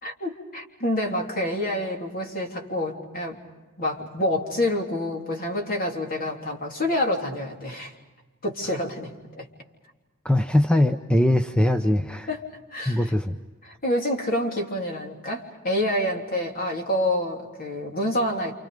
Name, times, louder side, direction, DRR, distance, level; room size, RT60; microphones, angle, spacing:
voice 1, 0.0-3.4 3.8-7.9 8.4-9.5 12.3-13.0 13.6-18.5, left 1 dB, 45° left, 1 dB, 3.5 m, -27 dB
voice 2, 10.2-12.3 12.9-13.4, left 1 dB, 5° left, 7 dB, 0.7 m, -21 dB
29.5 x 28.0 x 5.2 m, 1.2 s
head